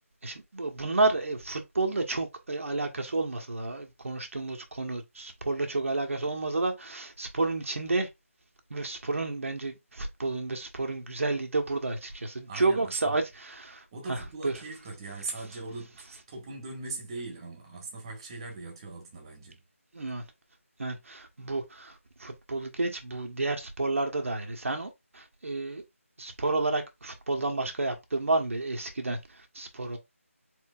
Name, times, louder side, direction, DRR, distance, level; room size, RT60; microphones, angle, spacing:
voice 1, 0.2-8.1 8.7-14.5 19.9-20.2 20.8-25.8 26.2-30.0, right 2 dB, 65° right, 1.2 m, -31 dB
voice 2, 12.5-13.2 13.9-19.6, right 3 dB, 20° right, 1.5 m, -40 dB
4.6 x 4.5 x 2.4 m
figure-of-eight pair, 170°, 8 cm